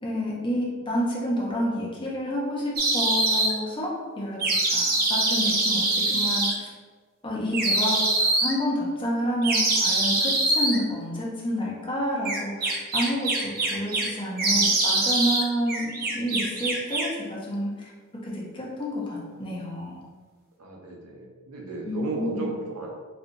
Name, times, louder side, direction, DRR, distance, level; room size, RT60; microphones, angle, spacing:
voice 1, 0.0-6.7 7.2-8.0 8.4-17.9 18.2-20.0 21.8-22.5, equal, 25° left, -5 dB, 0.8 m, -29 dB
sound 1, 2.8-3.5 4.4-6.5 7.5-8.5 9.4-10.8 12.2-14.1 14.4-15.4 15.7-17.2, right 2 dB, 45° right, 0.5 m, -24 dB
voice 2, 20.6-22.9, right 3 dB, 90° right, -1 dB, 0.8 m, -34 dB
4.3 x 2.5 x 2.6 m, 1.5 s
head